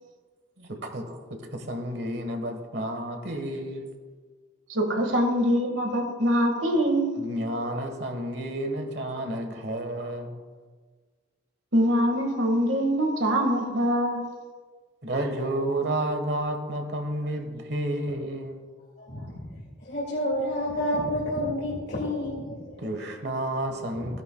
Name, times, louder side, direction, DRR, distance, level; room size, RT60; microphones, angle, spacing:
voice 1, 0.6-3.9 6.5-6.7 7.2-10.4 15.0-18.6 22.8-24.2, right 1 dB, 60° right, 5 dB, 1.4 m, -31 dB
voice 2, 4.7-7.1 11.7-14.2, equal, 75° right, 3 dB, 1.7 m, -23 dB
voice 3, 19.0-23.1 23.6-24.2, equal, 60° left, -6 dB, 2.3 m, -31 dB
16.5 x 10.5 x 2.3 m, 1.5 s
head